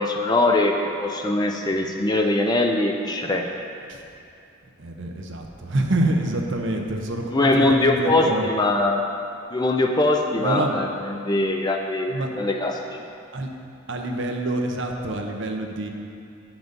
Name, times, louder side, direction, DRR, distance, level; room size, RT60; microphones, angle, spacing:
voice 1, 0.0-3.4 7.3-9.0 9.5-10.9 11.2-12.7, left 2 dB, 20° left, 2 dB, 0.4 m, -22 dB
voice 2, 4.8-8.5 10.4-10.8 12.1-12.3 13.3-13.5 13.9-15.9, right 1 dB, 55° right, 2 dB, 0.8 m, -26 dB
9.4 x 6.1 x 5.2 m, 2.6 s
head